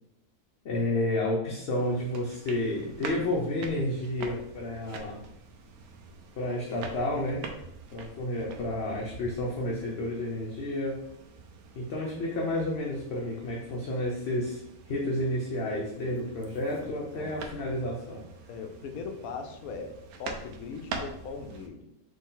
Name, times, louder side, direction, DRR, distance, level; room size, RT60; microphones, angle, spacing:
voice 1, 0.6-5.2 6.4-7.4 7.9-11.0 11.7-14.6 14.9-18.2, left 1 dB, 55° left, -2 dB, 0.9 m, -31 dB
sound 1, 1.8-21.7, right 4 dB, 90° right, 1.1 m, -45 dB
voice 2, 16.8-17.5 18.5-21.9, left 4 dB, 80° left, 6 dB, 1.1 m, -40 dB
4.2 x 3.2 x 3.7 m, 0.80 s
omnidirectional pair, 1.5 m